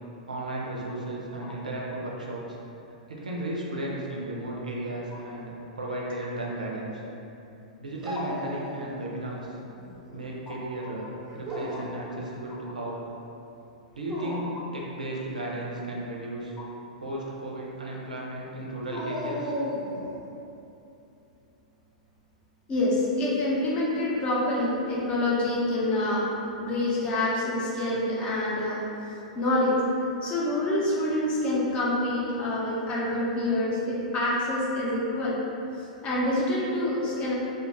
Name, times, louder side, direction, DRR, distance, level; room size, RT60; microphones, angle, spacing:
voice 1, 0.3-2.6 3.1-6.9 7.8-9.6 10.1-13.0 13.9-16.5 17.0-19.5, right 1 dB, 85° right, -3 dB, 0.4 m, -34 dB
Dog, 8.0-9.2 9.5-10.2 11.2-12.0 13.9-14.6 18.9-20.2, equal, 15° right, 0.5 m, -35 dB
voice 2, 22.7-28.8 29.3-29.8 30.2-35.4 35.8-37.3, left 1 dB, 25° left, -6 dB, 0.6 m, -27 dB
2.7 x 2.2 x 2.5 m, 2.9 s
figure-of-eight pair, 100°, 4 cm